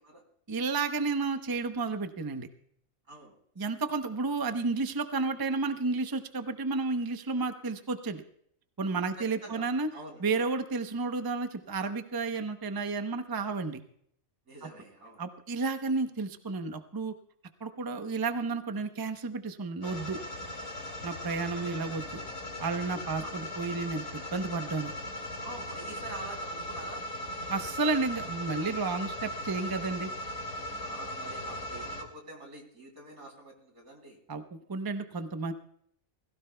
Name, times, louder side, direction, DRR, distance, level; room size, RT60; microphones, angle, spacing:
voice 1, 0.5-2.5 3.6-8.2 8.8-9.9 10.2-13.8 14.6-14.7 15.2-17.1 17.6-20.2 21.0-22.2 22.6-24.9 27.5-30.1 34.3-34.4 34.7-35.5, right 3 dB, 20° right, 8 dB, 0.6 m, -32 dB
voice 2, 9.2-10.2 14.5-15.2 21.6-21.7 23.2-23.3 25.4-27.0 30.8-34.2, right 1 dB, 85° right, 2 dB, 3.6 m, -46 dB
sound 1, 19.8-32.0, left 1 dB, 60° left, 2.9 m, -38 dB
21.0 x 16.0 x 2.2 m, 0.66 s
omnidirectional pair, 1.5 m